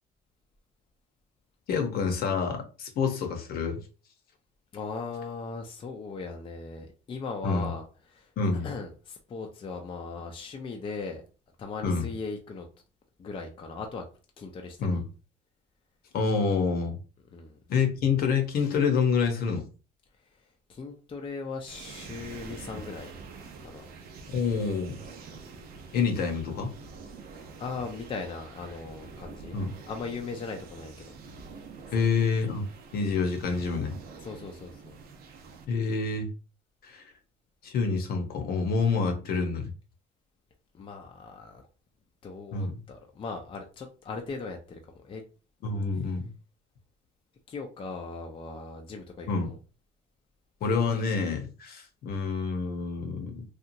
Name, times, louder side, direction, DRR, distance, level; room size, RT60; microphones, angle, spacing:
voice 1, 1.7-3.8 7.4-7.7 8.4-8.7 11.8-12.1 14.8-15.0 16.1-17.0 17.7-19.6 24.3-25.0 25.9-26.7 29.5-29.7 31.9-32.7 32.9-33.9 35.7-36.3 36.8-37.1 37.6-39.7 42.5-42.7 45.6-46.3 49.3-49.5 50.6-53.4, left 5 dB, 65° left, 0.8 m, -27 dB
voice 2, 4.7-7.8 8.1-8.3 8.6-11.2 11.6-12.7 13.2-14.1 14.4-15.0 17.3-17.6 20.7-23.1 23.6-23.8 27.6-29.6 29.9-31.1 31.9-32.1 32.4-32.6 34.2-35.0 40.7-41.7 42.2-45.2 47.5-49.6, left 4 dB, 30° left, 0.5 m, -38 dB
sound 1, 21.7-35.7, right 4 dB, 65° right, 0.6 m, -46 dB
2.9 x 2.3 x 2.6 m
cardioid pair, 110°, 17 cm